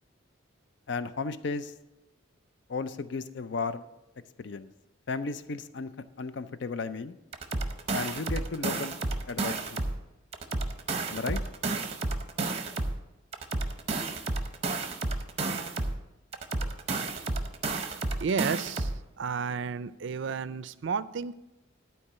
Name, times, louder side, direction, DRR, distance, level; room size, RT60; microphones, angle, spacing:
voice 1, 0.9-1.7 2.7-3.9 4.4-4.7 5.1-5.9 6.2-7.2 7.9-9.0 9.3-9.8 11.1-11.4, left 4 dB, 60° left, 13 dB, 0.5 m, -34 dB
sound 1, 7.3-10.0 10.3-13.0 13.3-16.0 16.3-19.0, right 3 dB, 30° right, 0.7 m, -31 dB
voice 2, 18.1-21.3, right 5 dB, 60° right, 15 dB, 0.4 m, -32 dB
11.5 x 4.6 x 6.7 m, 0.94 s
head